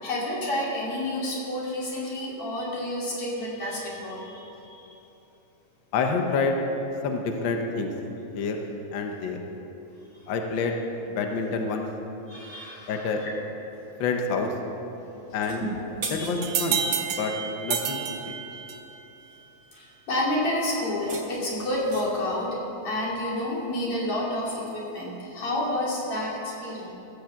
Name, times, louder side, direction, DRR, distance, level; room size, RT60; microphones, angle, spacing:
voice 1, 0.0-4.9 10.1-10.2 12.3-13.3 15.6-15.8 16.1-16.5 19.7-22.6 22.8-26.9, left 1 dB, 50° left, -5 dB, 3.4 m, -30 dB
voice 2, 5.9-6.6 7.0-7.9 8.3-8.6 8.9-9.4 10.3-10.8 11.1-11.9 12.9-13.2 14.0-14.5 15.3-15.6 16.1-16.8 17.1-18.0 18.2-18.5, left 4 dB, 75° left, 3 dB, 1.0 m, -27 dB
sound 1, 15.3-16.8 20.8-22.3, right 3 dB, 45° right, 1.3 m, -39 dB
sound 2, 16.4-19.0, right 7 dB, 75° right, 1.1 m, -29 dB
16.0 x 6.7 x 7.5 m, 3.0 s
omnidirectional pair, 3.4 m